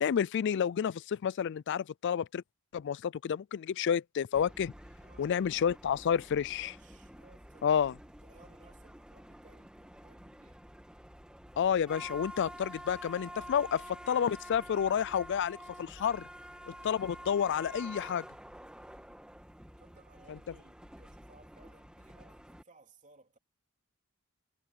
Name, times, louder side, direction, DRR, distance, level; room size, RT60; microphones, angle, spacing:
voice 1, 0.0-2.4 2.7-4.7 5.2-6.7 7.6-7.9 11.6-16.3 16.7-18.2, left 8 dB, 55° left, 0.3 m, -30 dB
sound 1, 4.3-22.6, equal, 5° right, 1.7 m, -49 dB
voice 2, 5.0-5.6 6.3-7.8 8.0-10.8 19.8-23.4, right 3 dB, 35° right, 3.1 m, -62 dB
head